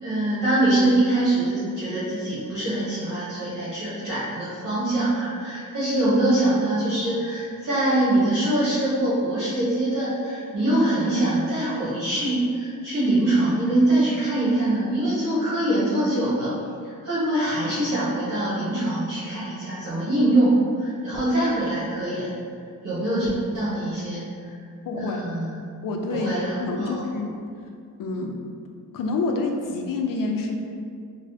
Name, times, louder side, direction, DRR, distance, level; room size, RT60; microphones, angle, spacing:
voice 1, 0.0-16.5 16.8-22.3 22.8-23.3 23.5-24.5 25.0-25.5 26.1-27.0, right 1 dB, 55° right, -11 dB, 1.1 m, -23 dB
voice 2, 24.9-25.2 25.8-27.3 28.0-28.3 28.9-30.6, left 3 dB, 65° left, 2 dB, 0.5 m, -27 dB
4.0 x 2.1 x 2.7 m, 2.2 s
cardioid pair, 105°, 37 cm